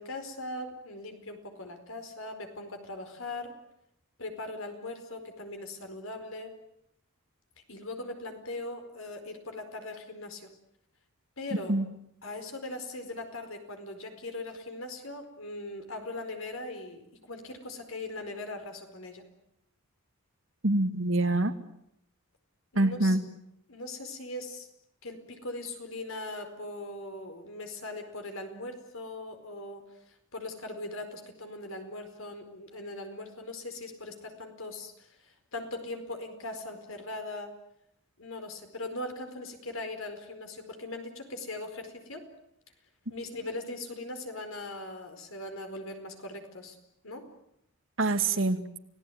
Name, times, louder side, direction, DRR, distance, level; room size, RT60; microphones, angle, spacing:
voice 1, 0.0-3.6 4.2-6.5 7.7-10.5 11.4-11.8 12.2-17.0 17.3-19.2 22.7-23.2 23.7-24.7 25.0-37.5 38.2-42.3 43.1-46.8 47.0-47.3, left 2 dB, 75° left, 6 dB, 4.7 m, -40 dB
voice 2, 20.6-21.5 22.8-23.2 48.0-48.6, right 2 dB, 65° right, 8 dB, 2.0 m, -25 dB
30.0 x 18.0 x 9.3 m, 0.76 s
head